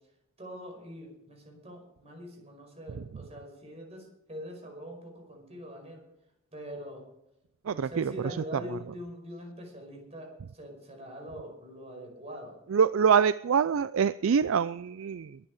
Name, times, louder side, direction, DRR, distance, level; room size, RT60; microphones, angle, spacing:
voice 1, 0.4-6.1 6.5-7.0 7.6-12.6, equal, 30° right, 2 dB, 5.4 m, -43 dB
voice 2, 7.7-8.1 12.7-15.4, right 6 dB, 80° right, 15 dB, 0.4 m, -25 dB
22.0 x 10.0 x 4.9 m, 0.86 s
head